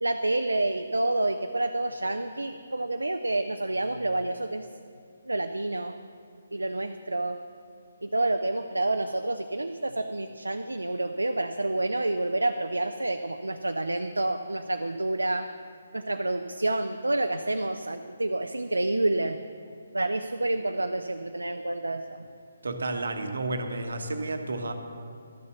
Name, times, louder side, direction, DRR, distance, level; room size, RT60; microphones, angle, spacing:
voice 1, 0.0-4.7 5.2-6.0 6.5-7.4 8.0-15.5 15.9-19.4 19.9-22.3, right 2 dB, 90° right, 7 dB, 0.4 m, -28 dB
voice 2, 22.6-24.7, right 2 dB, 70° right, 6 dB, 1.1 m, -31 dB
12.5 x 6.8 x 6.8 m, 2.3 s
figure-of-eight pair, 145°, 0 cm